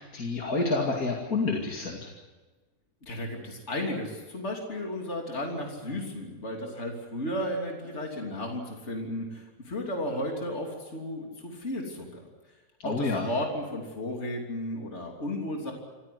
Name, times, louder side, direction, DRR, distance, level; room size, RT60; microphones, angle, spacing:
voice 1, 0.0-2.1 12.8-13.3, left 3 dB, 70° left, 0 dB, 2.8 m, -29 dB
voice 2, 3.0-12.2 12.8-15.7, left 1 dB, 45° left, 1 dB, 3.4 m, -34 dB
26.5 x 16.0 x 9.6 m, 1.2 s
omnidirectional pair, 1.6 m